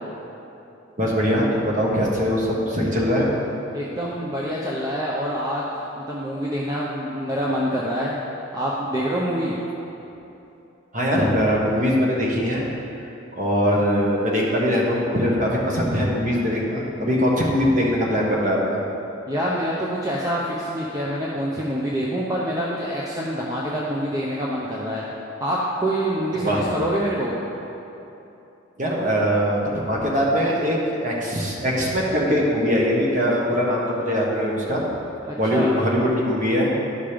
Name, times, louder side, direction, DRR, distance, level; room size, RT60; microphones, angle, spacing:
voice 1, 1.0-3.3 10.9-12.7 13.3-18.8 26.4-26.6 28.8-34.8 35.4-36.7, equal, 40° right, -3 dB, 1.5 m, -21 dB
voice 2, 3.7-5.7 6.0-8.2 8.5-9.5 19.3-25.0 25.4-27.4 35.3-35.7, equal, 15° right, -5 dB, 0.7 m, -26 dB
11.5 x 5.3 x 5.1 m, 2.9 s
head